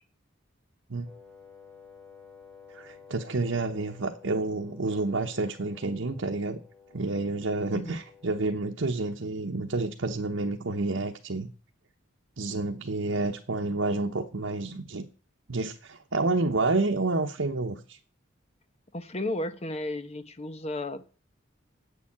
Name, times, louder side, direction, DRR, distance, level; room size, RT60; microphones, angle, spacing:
Wind instrument woodwind instrument, 1.0-8.7, left 5 dB, 5° left, 3.1 m, -53 dB
voice 1, 2.7-6.6 6.9-11.5 12.4-15.0 15.5-18.0, right 2 dB, 75° right, 2 dB, 1.0 m, -29 dB
voice 2, 18.9-21.0, left 1 dB, 35° left, 11 dB, 0.9 m, -33 dB
8.3 x 7.1 x 8.6 m, 0.39 s
head